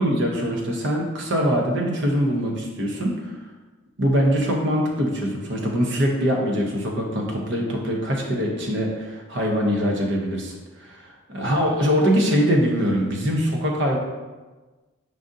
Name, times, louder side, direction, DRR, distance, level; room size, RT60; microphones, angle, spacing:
voice 1, 0.0-3.4 4.0-14.0, equal, 60° right, 0 dB, 0.8 m, -23 dB
5.0 x 2.6 x 3.6 m, 1.2 s
head